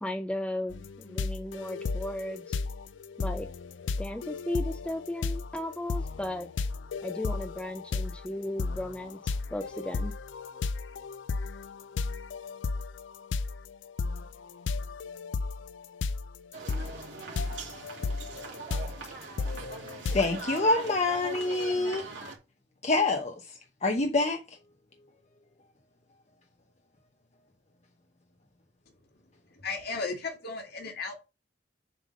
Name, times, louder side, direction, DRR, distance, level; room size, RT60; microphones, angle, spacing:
voice 1, 0.0-2.6 3.2-3.5 4.0-6.5 7.0-10.1, left 1 dB, 5° left, 0.4 m, -35 dB
sound 1, 0.7-20.6, left 4 dB, 85° left, 0.4 m, -34 dB
sound 2, 16.5-22.4, right 4 dB, 80° right, 2.4 m, -41 dB
voice 2, 20.1-22.1 22.8-24.6, left 2 dB, 40° left, 0.9 m, -27 dB
voice 3, 29.6-31.2, left 4 dB, 60° left, 2.1 m, -35 dB
7.4 x 3.4 x 6.4 m
head